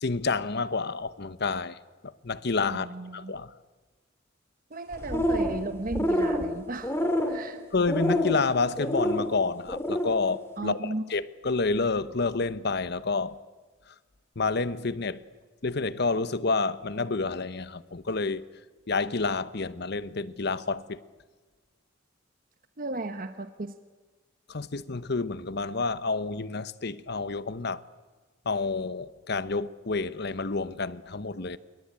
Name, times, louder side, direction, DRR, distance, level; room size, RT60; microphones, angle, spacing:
voice 1, 0.0-1.8 2.0-3.5 7.7-13.4 14.4-15.2 15.6-18.5 18.9-21.0 24.5-27.8 28.4-31.6, left 3 dB, 55° left, 1.0 m, -29 dB
voice 2, 2.7-3.3 4.7-7.0 7.3-7.6 10.6-11.0 22.8-23.7, right 2 dB, 45° right, 1.1 m, -35 dB
sound 1, 4.9-5.6 5.9-6.4 6.8-7.4 7.9-8.4 8.8-9.2 9.7-10.1, equal, 15° left, 3.1 m, -26 dB
28.0 x 23.0 x 8.8 m
head